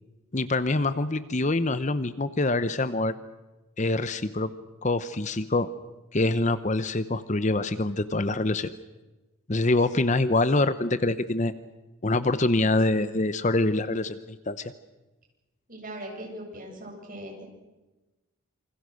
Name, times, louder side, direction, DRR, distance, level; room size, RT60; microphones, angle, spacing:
voice 1, 0.3-3.1 3.8-4.5 4.8-5.7 6.1-8.7 9.5-11.5 12.0-14.7, left 2 dB, 35° left, 13 dB, 0.8 m, -25 dB
voice 2, 15.7-17.4, right 1 dB, 40° right, 0 dB, 8.0 m, -40 dB
28.0 x 26.0 x 6.3 m, 1.1 s
head